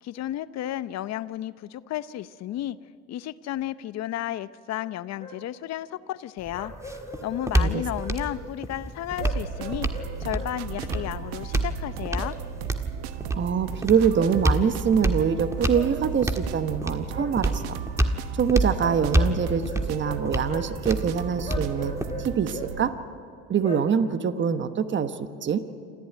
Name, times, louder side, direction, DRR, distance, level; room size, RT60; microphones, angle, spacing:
voice 1, 0.0-2.8 3.1-12.4, left 13 dB, 55° left, 15 dB, 0.8 m, -33 dB
sound 1, 4.8-4.9 5.2-5.4 6.5-8.4 9.2-10.5 10.9-11.1 12.1-12.3 14.1-14.3 15.7-15.9 17.1-17.3 18.8-20.2 20.5-20.7 21.4-22.7 23.6-23.8, left 2 dB, 20° left, 7.4 m, -38 dB
sound 2, 6.4-22.4, right 1 dB, 10° right, 1.6 m, -29 dB
sound 3, 9.2-22.9, right 9 dB, 90° right, 1.2 m, -36 dB
voice 2, 13.3-17.8 18.3-22.9 23.5-25.6, right 7 dB, 35° right, 10 dB, 1.2 m, -24 dB
27.0 x 14.5 x 9.3 m, 2.4 s
supercardioid pair, 95°, 31 cm